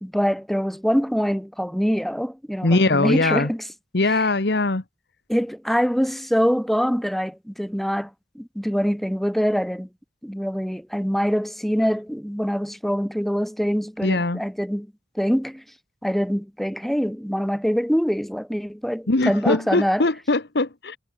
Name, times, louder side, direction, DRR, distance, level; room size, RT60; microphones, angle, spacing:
voice 1, 0.0-3.6 4.1-4.2 5.3-9.9 10.2-14.9 15.1-15.6 16.0-20.1, equal, ahead, 2.5 m, -24 dB
voice 2, 2.6-3.5 3.9-4.8 14.0-14.4 19.1-21.0, left 2 dB, 65° left, 1.4 m, -21 dB
head